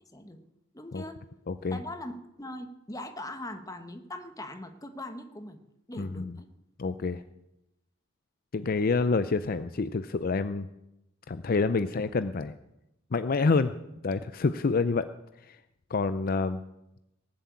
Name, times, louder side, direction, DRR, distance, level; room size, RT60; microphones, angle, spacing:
voice 1, 0.7-1.2 1.7-5.6 5.9-6.5, left 1 dB, 20° left, 7 dB, 1.2 m, -41 dB
voice 2, 1.5-1.8 5.9-6.4 6.8-7.2 8.5-10.7 11.3-12.5 13.1-13.7 14.0-15.1 15.4-15.6 15.9-16.6, left 4 dB, 50° left, 12 dB, 0.5 m, -27 dB
18.5 x 7.7 x 8.4 m, 0.88 s
head